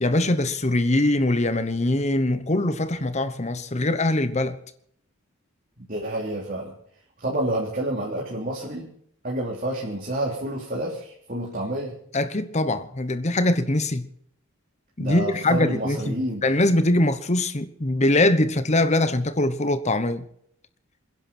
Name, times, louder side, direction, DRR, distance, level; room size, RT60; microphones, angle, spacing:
voice 1, 0.0-4.6 12.1-14.1 15.0-16.1 16.4-20.2, left 1 dB, 35° left, 1.0 m, -22 dB
voice 2, 5.9-6.7 7.2-8.9 9.2-11.9 15.0-16.4, right 1 dB, 40° right, 3.3 m, -29 dB
28.0 x 11.0 x 4.4 m
head